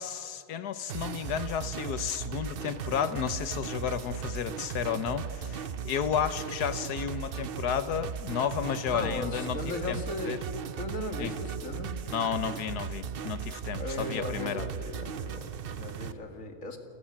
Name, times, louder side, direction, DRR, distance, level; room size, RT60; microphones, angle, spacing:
voice 1, 0.0-9.6 9.9-10.0 10.2-10.4 11.2-11.3 12.1-14.6, left 8 dB, 85° left, 13 dB, 1.5 m, -32 dB
sound 1, 0.9-16.1, right 7 dB, 55° right, 0.7 m, -37 dB
voice 2, 8.9-10.3 10.8-11.9 13.8-16.8, left 1 dB, 55° left, 5 dB, 2.5 m, -37 dB
29.0 x 13.0 x 8.7 m, 2.4 s
omnidirectional pair, 1.7 m